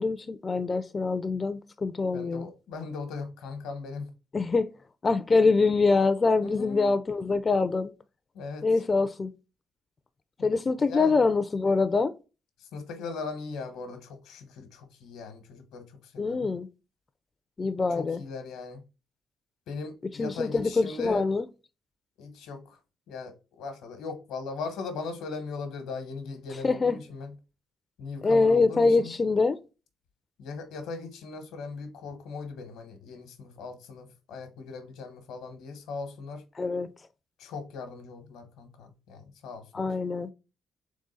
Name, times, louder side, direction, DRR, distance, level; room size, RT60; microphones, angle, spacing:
voice 1, 0.0-2.5 4.3-4.7 5.0-7.9 8.6-9.3 10.4-12.1 16.2-16.7 17.6-18.2 20.2-21.4 26.6-27.0 28.2-29.6 36.6-36.9 39.7-40.3, left 3 dB, 30° left, 0.3 m, -24 dB
voice 2, 2.1-4.1 6.4-6.9 8.3-8.7 10.4-11.2 12.6-16.5 17.9-18.8 19.7-21.3 22.2-22.8 23.1-27.3 28.0-29.2 30.4-36.4 37.4-39.9, left 4 dB, 90° left, 1.0 m, -39 dB
3.7 x 3.6 x 3.9 m
cardioid pair, 90°, 0 cm